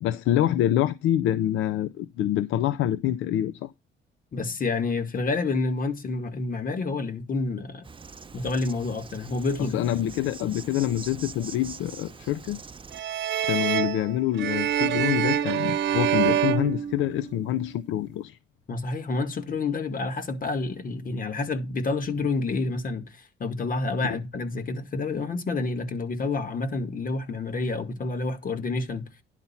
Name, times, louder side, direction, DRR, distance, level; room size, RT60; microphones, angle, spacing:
voice 1, 0.0-3.7 9.6-12.6 13.4-18.4 24.1-24.2, left 12 dB, 90° left, 0.6 m, -26 dB
voice 2, 4.3-7.9 8.3-10.1 18.7-29.0, left 3 dB, 45° left, 2.0 m, -29 dB
Insect, 7.8-13.0, right 5 dB, 25° right, 0.8 m, -44 dB
sound 1, 12.9-17.5, right 10 dB, 65° right, 1.1 m, -26 dB
10.5 x 4.1 x 5.7 m
cardioid pair, 90°, 20 cm